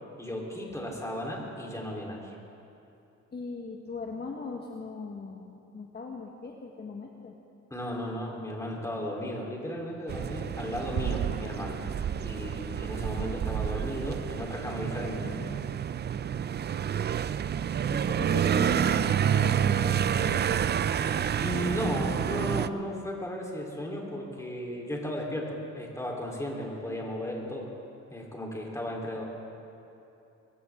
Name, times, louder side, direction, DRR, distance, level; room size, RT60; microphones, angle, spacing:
voice 1, 0.2-2.4 7.7-11.8 12.2-15.3 21.4-27.7 28.1-29.2, equal, 10° left, -1 dB, 3.5 m, -35 dB
voice 2, 3.3-7.3 15.1-15.6 17.9-20.5, left 4 dB, 35° left, 1 dB, 1.3 m, -40 dB
sound 1, 10.1-22.7, right 8 dB, 35° right, 0.4 m, -29 dB
22.5 x 15.5 x 3.6 m, 2.8 s
cardioid pair, 90°, 30 cm